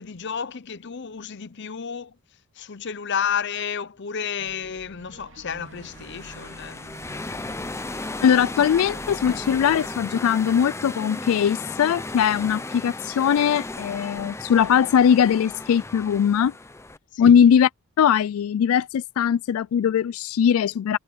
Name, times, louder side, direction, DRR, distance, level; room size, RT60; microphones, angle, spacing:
voice 1, 0.0-2.1 2.6-6.8 17.1-17.4, left 7 dB, 55° left, 0.7 m, -31 dB
sound 1, 4.4-10.0, right 2 dB, 60° right, 2.3 m, -47 dB
sound 2, 5.6-17.0, left 2 dB, 15° left, 0.6 m, -35 dB
voice 2, 8.2-16.5 17.2-17.7 18.0-21.0, left 8 dB, 85° left, 0.3 m, -20 dB
head